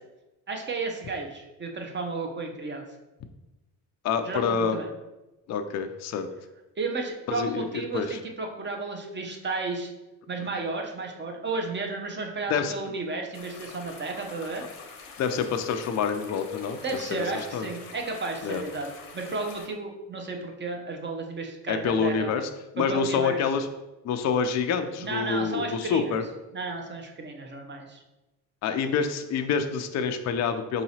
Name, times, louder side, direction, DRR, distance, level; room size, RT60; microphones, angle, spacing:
voice 1, 0.5-2.8 4.2-4.9 6.8-9.9 10.3-14.6 16.8-18.9 19.1-22.3 22.8-23.4 25.0-26.2 26.5-28.0, right 3 dB, 25° right, 2 dB, 0.7 m, -33 dB
voice 2, 4.0-4.8 5.5-6.3 7.3-8.2 12.5-12.7 15.2-16.8 17.1-17.2 17.5-17.7 18.4-18.6 21.7-22.5 22.7-23.7 24.0-26.2 28.6-30.8, left 6 dB, 40° left, 7 dB, 0.4 m, -27 dB
sound 1, 13.3-19.7, left 5 dB, 85° left, 0.8 m, -45 dB
4.7 x 2.9 x 2.8 m, 1.0 s
supercardioid pair, 75°, 42 cm